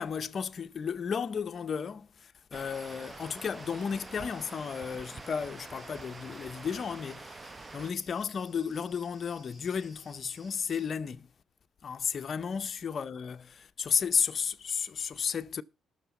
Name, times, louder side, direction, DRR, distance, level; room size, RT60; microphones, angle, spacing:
voice 1, 0.0-11.3 11.8-15.6, left 6 dB, 50° left, 0.7 m, -33 dB
sound 1, 2.5-7.9, right 3 dB, 25° right, 0.7 m, -46 dB
sound 2, 2.7-10.9, left 1 dB, ahead, 4.6 m, -59 dB
12.0 x 6.6 x 5.8 m
cardioid pair, 90°, 0 cm